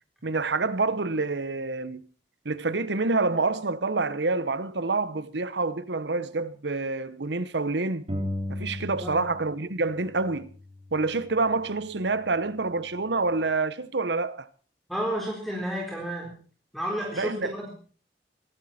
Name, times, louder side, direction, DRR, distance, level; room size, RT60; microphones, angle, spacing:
voice 1, 0.2-2.1 2.4-8.1 8.5-10.5 10.9-14.5 17.1-17.5, right 3 dB, 80° right, 1.1 m, -27 dB
sound 1, 8.1-9.6 9.8-11.6, left 1 dB, 35° right, 4.1 m, -36 dB
voice 2, 14.9-16.4 16.7-17.4, equal, ahead, 3.9 m, -31 dB
23.0 x 12.0 x 4.3 m
head